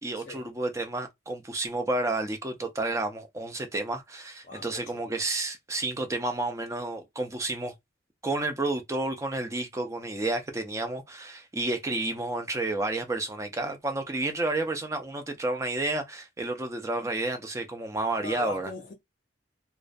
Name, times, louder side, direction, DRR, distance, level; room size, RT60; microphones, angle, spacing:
voice 1, 0.0-7.7 8.2-18.7, right 2 dB, 15° right, 0.4 m, -31 dB
voice 2, 4.4-5.0 18.2-18.9, left 3 dB, 45° left, 0.5 m, -40 dB
2.4 x 2.1 x 2.5 m
head